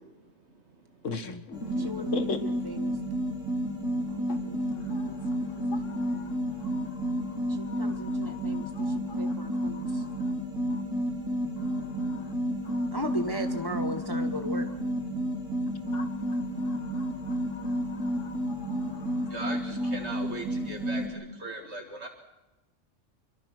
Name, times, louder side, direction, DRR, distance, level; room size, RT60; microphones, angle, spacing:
voice 1, 1.0-2.4 4.3-4.4 4.9-5.2 5.7-6.3 6.6-7.4 7.7-10.1 10.7-10.8 11.7-12.2 12.7-12.9 13.7-13.9 15.9-16.2 16.7-19.3, left 4 dB, 75° left, 10 dB, 1.9 m, -41 dB
sound 1, 1.5-21.1, equal, 5° right, 6.3 m, -31 dB
voice 2, 1.8-2.9 4.4-4.5 7.5-8.7 9.2-9.8 12.9-14.6, equal, 20° left, 6 dB, 1.4 m, -36 dB
voice 3, 19.3-21.0 21.4-22.1, right 2 dB, 60° right, 3 dB, 2.3 m, -38 dB
26.0 x 23.5 x 6.2 m, 1.0 s
omnidirectional pair, 1.3 m